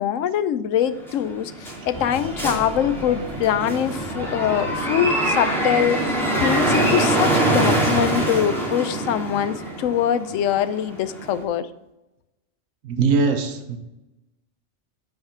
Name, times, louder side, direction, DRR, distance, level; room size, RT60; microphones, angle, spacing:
voice 1, 0.0-6.0 6.4-11.7, left 9 dB, 80° left, 14 dB, 1.0 m, -23 dB
sound 1, 1.1-11.4, right 1 dB, ahead, 2.3 m, -24 dB
Breathing, 1.9-7.1, equal, 55° right, 1.9 m, -38 dB
voice 2, 12.8-13.8, right 4 dB, 85° right, 7 dB, 1.3 m, -21 dB
9.2 x 5.7 x 4.4 m, 0.97 s
omnidirectional pair, 1.3 m